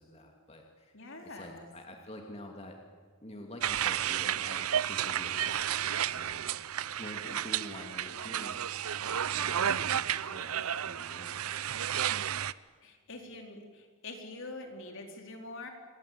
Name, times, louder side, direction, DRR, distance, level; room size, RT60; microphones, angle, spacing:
voice 1, 0.0-0.9 1.2-2.8 3.2-6.5 7.0-11.5, left 1 dB, 30° left, 2 dB, 2.7 m, -48 dB
voice 2, 0.9-1.7 12.8-15.7, left 2 dB, 60° left, 3 dB, 4.3 m, -45 dB
sound 1, 3.6-12.5, right 10 dB, 85° right, 0.7 m, -32 dB
27.5 x 22.5 x 8.7 m, 1.5 s
head